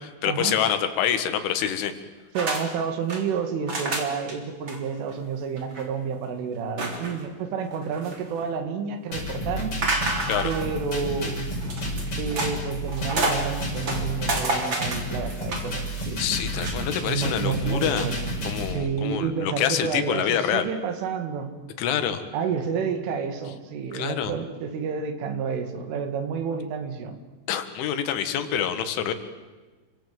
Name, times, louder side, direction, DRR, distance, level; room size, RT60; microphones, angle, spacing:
voice 1, 0.0-1.9 10.3-10.5 16.2-18.1 18.5-20.7 21.8-22.2 23.9-24.3 27.5-29.1, left 9 dB, 80° left, 9 dB, 4.2 m, -26 dB
sound 1, 2.3-2.6 2.9-3.2 3.7-4.3 4.7-4.8 5.1-5.2 5.6-5.8 6.8-7.2 7.7-8.4 9.8-10.7 11.6-12.5 12.9-13.5 13.8-15.7 16.5-16.8, right 2 dB, 25° right, 3.7 m, -29 dB
voice 2, 2.3-9.8 10.4-11.4 12.2-16.4 17.0-18.3 18.7-21.5 22.3-27.2, right 6 dB, 85° right, 8 dB, 4.9 m, -30 dB
sound 2, 9.1-18.7, equal, 30° left, 7.1 m, -31 dB
29.0 x 25.5 x 7.9 m, 1.3 s
omnidirectional pair, 5.5 m